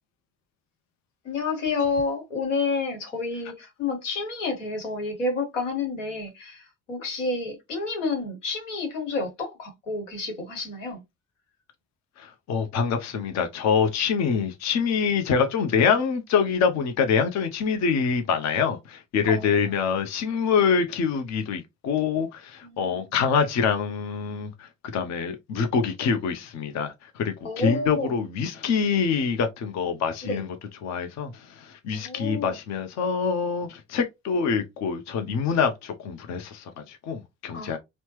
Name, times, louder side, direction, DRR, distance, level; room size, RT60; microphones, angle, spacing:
voice 1, 1.2-11.0 19.3-19.7 22.6-23.0 27.4-28.1 30.2-30.4 31.9-32.6 37.5-37.8, left 3 dB, 85° left, 1.1 m, -30 dB
voice 2, 12.2-30.5 30.8-37.8, left 6 dB, 45° left, 0.7 m, -25 dB
4.2 x 2.1 x 3.0 m
figure-of-eight pair, 45°, 37 cm